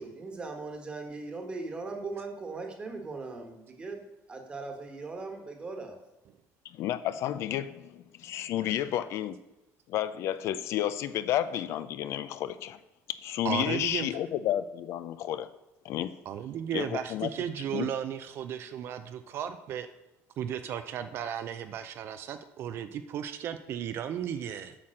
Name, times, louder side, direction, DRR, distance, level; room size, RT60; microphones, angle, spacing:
voice 1, 0.0-6.0, right 3 dB, 15° right, 4 dB, 1.3 m, -39 dB
voice 2, 6.6-9.4 9.9-12.8 13.1-15.5 15.8-16.2 16.7-17.3 17.7-17.9, left 12 dB, 50° left, 13 dB, 0.4 m, -31 dB
voice 3, 13.4-14.1 16.3-19.9 20.4-24.8, right 9 dB, 45° right, 9 dB, 0.5 m, -35 dB
8.6 x 5.8 x 6.4 m, 0.98 s
cardioid pair, 170°, 6 cm